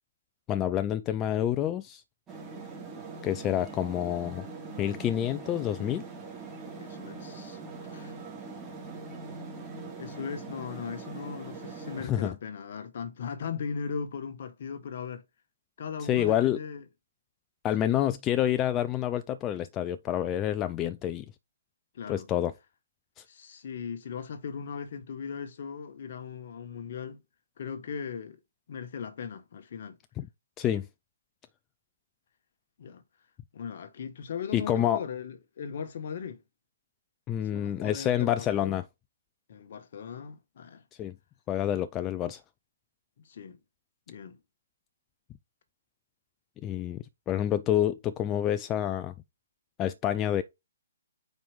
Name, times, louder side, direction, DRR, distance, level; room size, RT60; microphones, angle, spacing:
voice 1, 0.5-2.0 3.2-4.5 4.8-6.0 12.0-12.3 16.0-16.6 17.6-21.2 22.1-22.5 23.2-23.3 30.2-30.3 30.6-30.9 34.5-35.0 37.3-38.8 41.0-41.1 41.5-42.4 46.6-49.1 49.8-50.4, left 11 dB, 20° left, 0.4 m, -28 dB
sound 1, 2.3-12.1, right 4 dB, 15° right, 2.0 m, -42 dB
voice 2, 6.8-7.6 7.9-8.2 10.0-15.2 15.8-16.8 17.8-18.0 21.9-22.3 23.3-27.2 27.6-28.4 28.7-30.0 32.8-33.0 33.5-36.4 37.5-38.8 39.5-40.8 43.2-43.6 44.1-44.4, left 6 dB, 55° left, 1.3 m, -38 dB
5.3 x 4.6 x 5.1 m
hypercardioid pair, 145°, 0 cm